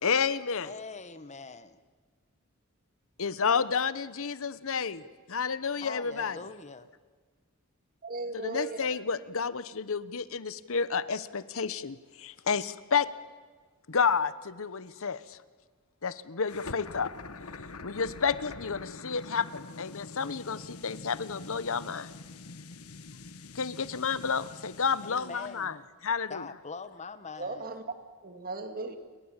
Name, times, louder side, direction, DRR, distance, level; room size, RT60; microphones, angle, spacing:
voice 1, 0.0-0.7 3.2-5.0 5.3-6.4 8.3-13.1 13.9-15.4 16.0-17.1 17.8-22.1 23.5-25.8 26.0-26.5, left 5 dB, 65° left, 1.0 m, -30 dB
voice 2, 0.6-1.7 5.8-6.9 25.0-25.8 26.3-27.7, left 4 dB, 35° left, 1.2 m, -43 dB
voice 3, 8.0-8.9 27.4-27.8 28.2-29.0, right 3 dB, 45° right, 2.7 m, -37 dB
sound 1, 16.5-25.6, left 3 dB, 85° left, 1.4 m, -45 dB
29.5 x 22.0 x 8.9 m
head